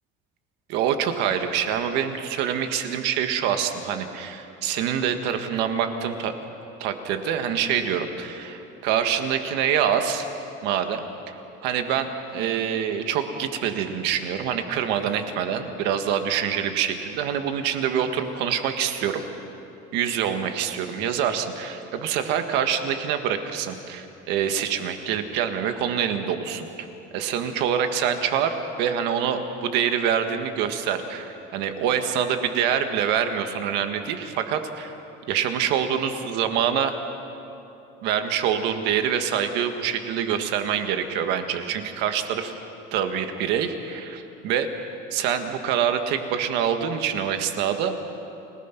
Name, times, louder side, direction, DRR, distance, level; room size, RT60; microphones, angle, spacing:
voice 1, 0.7-6.3 6.8-10.3 10.6-11.0 11.6-12.1 12.3-19.2 19.9-26.9 27.1-34.9 35.3-36.9 38.0-42.5 42.9-44.7 45.1-47.9, right 8 dB, 65° right, 7 dB, 1.7 m, -25 dB
29.5 x 18.5 x 6.0 m, 2.9 s
cardioid pair, 175°, 19 cm